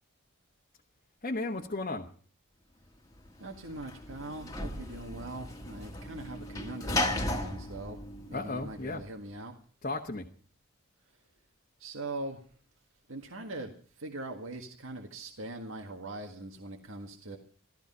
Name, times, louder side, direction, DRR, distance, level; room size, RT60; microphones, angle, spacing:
voice 1, 1.2-2.1 8.3-9.0 9.8-10.3, left 2 dB, 35° left, 0 dB, 1.3 m, -34 dB
Sliding door / Slam, 3.2-9.0, left 1 dB, 15° left, 1.7 m, -36 dB
voice 2, 3.4-8.0 8.3-9.5 11.8-12.4 13.1-17.4, right 2 dB, 70° right, 3 dB, 1.8 m, -41 dB
15.0 x 14.0 x 5.5 m, 0.42 s
head